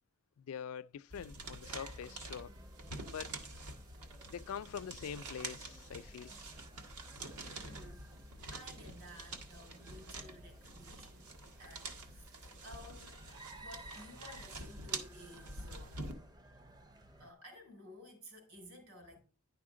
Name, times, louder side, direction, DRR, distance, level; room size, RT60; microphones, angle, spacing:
voice 1, 0.4-2.5 3.1-3.3 4.3-6.4, left 7 dB, 65° left, 0.3 m, -44 dB
sound 1, 1.1-16.1, right 3 dB, 85° right, 1.5 m, -47 dB
sound 2, 1.6-17.3, right 1 dB, 20° right, 0.5 m, -56 dB
voice 2, 7.4-8.1 8.5-13.2 13.6-16.1 17.2-19.2, left 1 dB, 70° right, 4.1 m, -55 dB
10.5 x 5.7 x 3.7 m
head